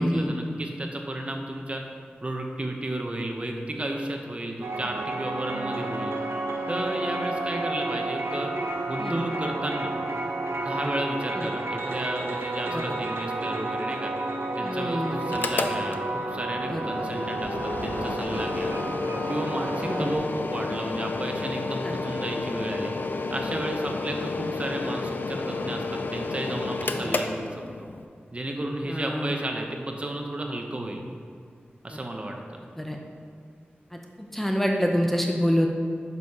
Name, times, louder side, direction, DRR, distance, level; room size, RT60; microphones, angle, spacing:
voice 1, 0.0-1.8 2.2-6.1 6.7-8.5 8.9-9.9 10.6-14.1 14.6-18.8 19.3-22.9 23.3-27.9 28.3-31.0 31.8-32.6, right 1 dB, 35° right, 2 dB, 0.7 m, -33 dB
sound 1, 4.6-20.2, right 2 dB, 85° right, 0.6 m, -31 dB
voice 2, 14.6-15.2 16.7-16.8 19.9-20.1 21.8-21.9 27.0-27.1 28.9-29.3 32.8-33.0 34.3-35.7, equal, 5° left, 1 dB, 0.5 m, -26 dB
Mechanical fan, 15.2-28.0, left 3 dB, 55° left, 0.4 m, -31 dB
8.1 x 6.6 x 2.8 m, 2.2 s
wide cardioid pair, 95°, 4 cm